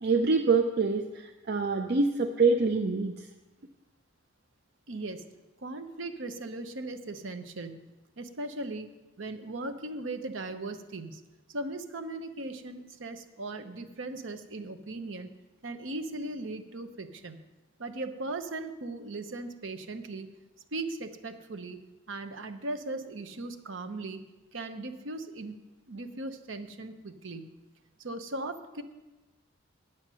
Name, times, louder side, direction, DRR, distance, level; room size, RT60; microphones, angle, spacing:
voice 1, 0.0-3.3, right 4 dB, 50° right, 4 dB, 0.5 m, -25 dB
voice 2, 4.9-5.2 5.6-7.9 8.2-8.9 9.2-11.2 11.5-15.3 15.6-17.4 17.8-20.3 20.7-21.8 22.1-24.2 24.5-25.6 25.9-27.5 28.0-28.8, right 2 dB, 70° right, 8 dB, 0.9 m, -38 dB
9.2 x 8.9 x 6.2 m, 1.1 s
head